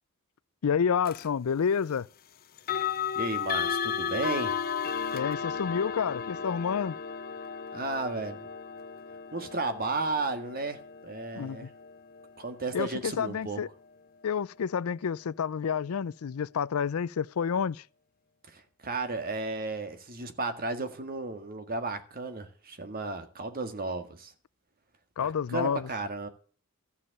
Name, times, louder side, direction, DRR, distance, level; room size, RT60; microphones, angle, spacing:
voice 1, 0.6-2.1 5.1-7.0 11.3-11.7 12.7-13.7 14.2-17.8 25.2-25.9, left 7 dB, 85° left, 0.4 m, -29 dB
sound 1, 1.0-1.3 2.6-13.4, left 7 dB, 45° left, 0.7 m, -34 dB
voice 2, 3.2-4.6 7.7-8.5 9.3-11.7 12.4-13.6 18.5-24.3 25.2-26.3, right 3 dB, 45° right, 1.9 m, -34 dB
13.5 x 7.2 x 6.6 m
head